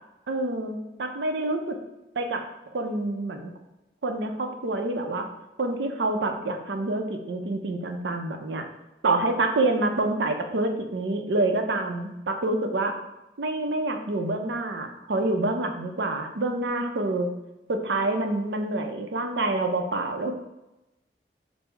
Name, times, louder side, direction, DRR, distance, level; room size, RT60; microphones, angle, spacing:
voice 1, 0.3-1.8 2.2-3.5 4.0-5.3 5.6-8.6 9.0-13.0 13.4-17.3 17.7-20.4, right 2 dB, 80° right, 5 dB, 0.6 m, -27 dB
5.3 x 2.0 x 4.4 m, 0.97 s
head